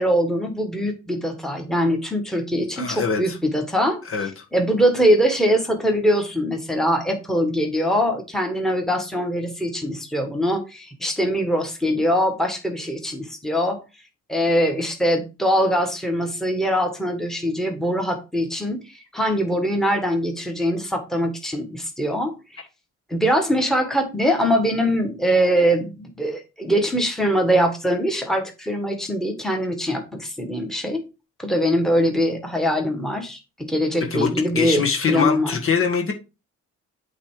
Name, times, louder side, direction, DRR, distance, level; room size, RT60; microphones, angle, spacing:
voice 1, 0.0-4.0 4.5-13.8 14.3-22.6 23.1-31.0 31.4-35.6, equal, ahead, 3 dB, 1.6 m, -22 dB
voice 2, 2.8-3.4 4.1-4.4 34.1-34.3 34.5-36.1, left 6 dB, 45° left, 2 dB, 1.7 m, -23 dB
8.3 x 3.3 x 4.8 m, 0.29 s
cardioid pair, 90°, 30 cm